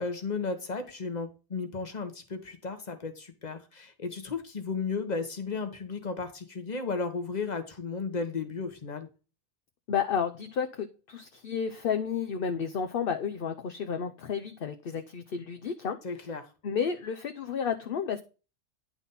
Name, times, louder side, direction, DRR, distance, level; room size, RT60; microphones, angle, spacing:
voice 1, 0.0-9.1 16.0-16.4, left 4 dB, 40° left, 7 dB, 1.4 m, -34 dB
voice 2, 9.9-16.0 16.6-18.2, left 7 dB, 60° left, 7 dB, 0.9 m, -31 dB
10.5 x 4.1 x 5.6 m, 0.33 s
omnidirectional pair, 1.1 m